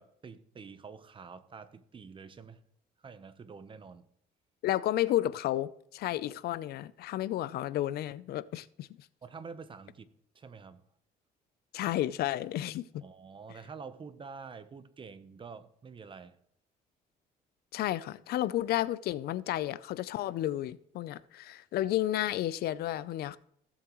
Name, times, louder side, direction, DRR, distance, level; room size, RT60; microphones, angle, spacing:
voice 1, 0.0-2.6 3.0-4.1 9.2-10.1 10.3-10.8 13.0-16.4, right 5 dB, 30° right, 0.9 m, -47 dB
voice 2, 4.6-8.9 11.7-13.0 17.7-23.4, left 14 dB, 70° left, 0.6 m, -32 dB
16.0 x 7.4 x 3.1 m
cardioid pair, 110°, 17 cm